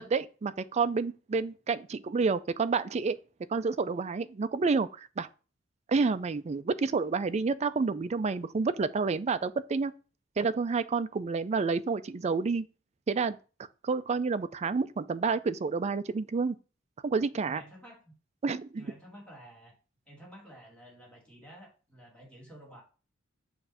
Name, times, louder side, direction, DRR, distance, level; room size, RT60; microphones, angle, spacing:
voice 1, 0.0-3.2 3.5-5.3 5.9-9.9 10.4-12.7 13.1-13.4 13.8-16.6 17.0-17.6 18.4-18.9, right 4 dB, 35° right, 0.4 m, -29 dB
voice 2, 17.5-18.1 18.8-19.7 20.1-22.8, right 1 dB, 5° left, 2.2 m, -51 dB
7.0 x 2.6 x 5.4 m
head